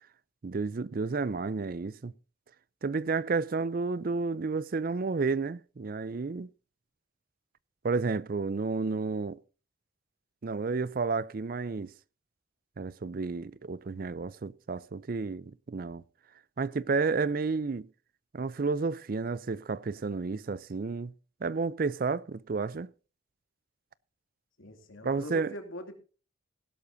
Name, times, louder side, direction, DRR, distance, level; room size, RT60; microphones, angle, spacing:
voice 1, 0.4-2.1 2.8-6.5 7.8-9.4 10.4-11.9 12.8-16.0 16.6-17.9 18.3-21.1 21.4-22.9 25.0-25.5, right 4 dB, 45° right, 0.4 m, -31 dB
voice 2, 24.6-25.9, equal, 90° left, 2.7 m, -42 dB
16.5 x 12.0 x 2.7 m
head